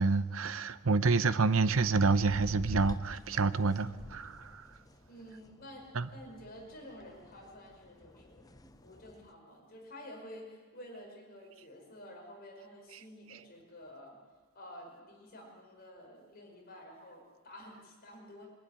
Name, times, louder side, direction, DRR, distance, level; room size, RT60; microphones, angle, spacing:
voice 1, 0.0-4.6 5.9-6.1, right 4 dB, 65° right, 0.7 m, -28 dB
sound 1, 1.7-9.3, left 1 dB, 15° left, 0.5 m, -47 dB
voice 2, 5.1-14.2 14.5-18.5, left 1 dB, 45° left, 4.8 m, -50 dB
23.0 x 12.5 x 9.9 m
head